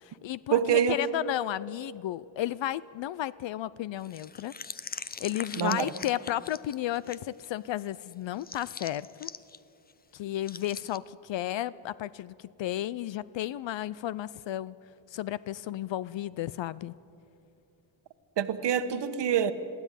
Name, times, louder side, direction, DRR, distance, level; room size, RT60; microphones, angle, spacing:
voice 1, 0.0-4.5 5.2-9.3 10.1-14.8 15.1-16.9, left 13 dB, 70° left, 19 dB, 0.5 m, -33 dB
voice 2, 0.5-1.0 5.6-5.9 18.4-19.5, right 9 dB, 60° right, 9 dB, 1.2 m, -26 dB
sound 1, 4.0-7.2 7.4-7.5 8.4-9.6 9.9-10.0 10.4-11.0, left 5 dB, 20° left, 0.5 m, -42 dB
22.5 x 15.5 x 9.8 m, 2.7 s
wide cardioid pair, 130°, 47 cm